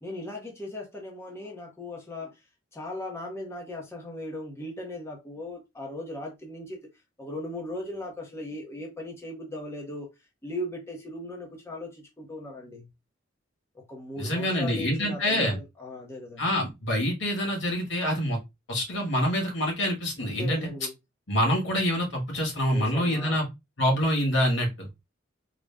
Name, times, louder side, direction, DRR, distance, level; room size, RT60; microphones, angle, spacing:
voice 1, 0.0-2.4 2.7-6.8 7.2-10.1 10.4-12.9 13.7-16.6 20.2-20.9 22.7-23.4, left 1 dB, 15° left, 0.9 m, -38 dB
voice 2, 14.2-15.6 16.4-18.4 18.7-20.7 21.3-23.5 23.8-24.9, equal, 75° left, 2.0 m, -26 dB
3.8 x 2.3 x 3.5 m
head